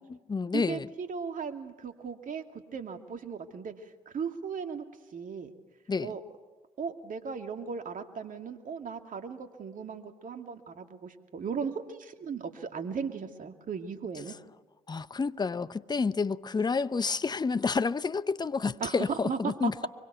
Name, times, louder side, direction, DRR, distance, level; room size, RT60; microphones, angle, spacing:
voice 1, 0.0-0.9 5.9-6.1 14.9-19.9, left 4 dB, 20° left, 0.8 m, -29 dB
voice 2, 0.5-2.4 2.7-3.7 4.1-4.8 5.1-5.5 6.0-6.2 6.8-14.4 18.8-19.7, right 6 dB, 45° right, 2.5 m, -36 dB
24.0 x 23.0 x 8.1 m
hypercardioid pair, 50°, 19 cm